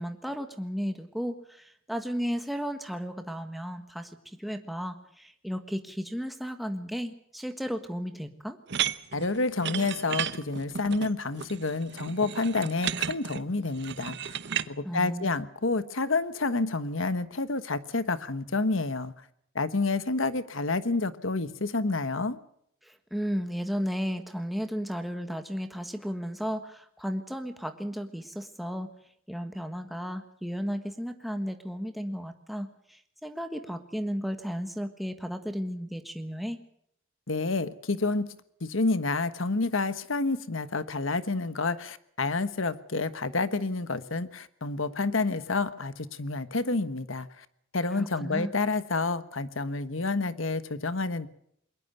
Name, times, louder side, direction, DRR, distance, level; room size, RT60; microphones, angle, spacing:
voice 1, 0.0-8.6 14.8-15.3 22.8-28.9 29.3-36.6 47.9-48.5, equal, ahead, 1.5 m, -34 dB
sound 1, 8.7-14.7, right 9 dB, 55° right, 0.9 m, -33 dB
voice 2, 9.1-14.3 14.7-19.1 19.5-22.4 37.3-38.3 38.6-47.4 47.7-51.3, left 3 dB, 70° left, 1.3 m, -29 dB
22.5 x 20.0 x 6.8 m
head